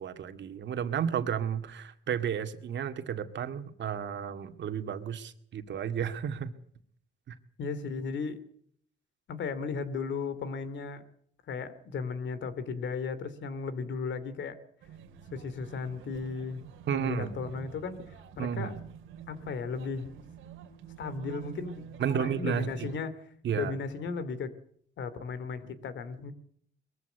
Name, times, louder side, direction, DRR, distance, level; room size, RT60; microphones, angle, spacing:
voice 1, 0.0-6.5 7.3-7.4 16.9-17.4 18.4-18.7 22.0-22.7 23.4-23.7, right 8 dB, 65° right, 8 dB, 2.1 m, -32 dB
voice 2, 7.6-8.3 9.3-11.0 11.5-14.6 15.3-18.0 18.4-18.7 19.3-20.1 21.0-24.5 25.0-26.3, left 5 dB, 70° left, 13 dB, 2.7 m, -35 dB
sound 1, 14.8-23.0, right 8 dB, 90° right, 2.5 m, -47 dB
22.0 x 15.0 x 9.1 m, 0.63 s
cardioid pair, 90°, 20 cm